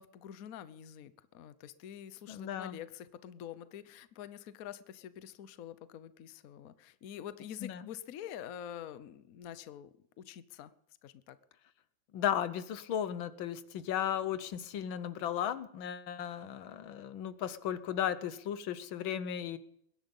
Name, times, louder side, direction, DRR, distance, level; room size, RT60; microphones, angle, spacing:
voice 1, 0.0-9.9 10.2-10.7 11.0-11.4, left 10 dB, 60° left, 14 dB, 1.0 m, -46 dB
voice 2, 2.3-2.8 7.6-7.8 12.1-19.6, left 9 dB, 80° left, 13 dB, 1.7 m, -35 dB
21.5 x 10.5 x 5.4 m, 0.70 s
omnidirectional pair, 2.1 m